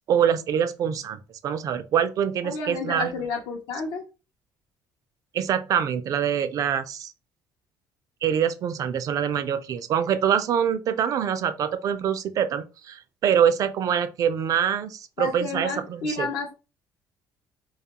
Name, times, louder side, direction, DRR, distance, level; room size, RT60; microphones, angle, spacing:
voice 1, 0.0-3.1 5.3-7.1 8.2-16.3, right 8 dB, 45° right, 0.3 m, -25 dB
voice 2, 2.4-4.0 15.2-16.6, left 4 dB, 80° left, 0.6 m, -31 dB
2.3 x 2.2 x 2.8 m
cardioid pair, 130°, 8 cm